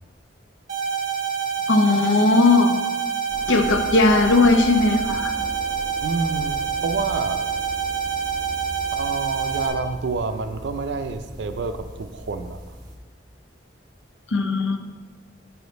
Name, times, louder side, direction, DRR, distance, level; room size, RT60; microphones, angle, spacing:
sound 1, 0.7-9.7, right 7 dB, 45° right, 1.5 m, -27 dB
voice 1, 1.7-2.8 3.5-5.3 14.3-14.8, left 3 dB, 85° left, 7 dB, 0.5 m, -18 dB
sound 2, 3.3-13.0, equal, 20° right, 0.9 m, -39 dB
voice 2, 6.0-7.5 9.0-12.6, right 4 dB, 70° right, 8 dB, 0.4 m, -28 dB
5.0 x 4.7 x 5.2 m, 1.4 s
head